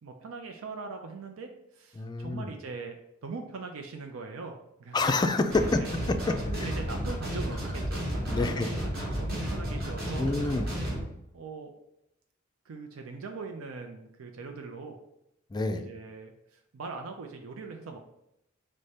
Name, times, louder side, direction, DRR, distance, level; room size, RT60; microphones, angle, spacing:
voice 1, 0.0-3.0 3.2-5.0 5.7-5.9 6.5-10.3 11.3-11.7 12.6-15.0 15.7-18.0, right 4 dB, 85° right, 4 dB, 0.4 m, -41 dB
voice 2, 2.0-2.5 4.9-5.8 6.1-6.3 6.6-6.7 8.3-8.7 10.2-10.7 15.5-15.9, left 3 dB, 20° left, 7 dB, 0.3 m, -27 dB
sound 1, 5.5-11.0, equal, 50° right, 1.5 m, -32 dB
4.9 x 2.1 x 4.1 m, 0.82 s
head